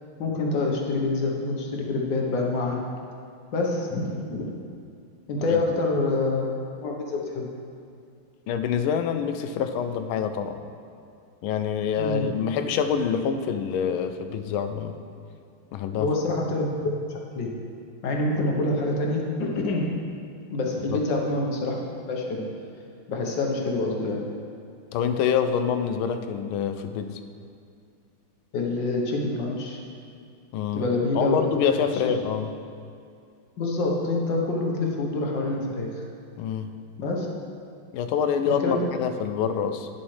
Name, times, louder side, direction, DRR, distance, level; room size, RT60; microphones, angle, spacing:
voice 1, 0.2-2.8 3.5-4.5 5.3-6.4 6.8-7.5 12.0-12.3 16.0-16.7 17.1-17.5 18.0-20.0 20.5-22.5 23.1-24.3 28.5-29.8 30.7-31.4 31.9-32.0 33.6-36.0 37.0-37.3 38.6-38.8, left 2 dB, 65° left, -1 dB, 1.5 m, -26 dB
voice 2, 8.5-10.6 11.4-15.0 15.7-16.1 20.9-21.0 24.9-27.2 30.5-30.9 31.2-32.5 36.4-36.7 37.9-39.9, left 7 dB, 80° left, 8 dB, 1.4 m, -26 dB
11.0 x 7.2 x 3.2 m, 2.4 s
omnidirectional pair, 2.4 m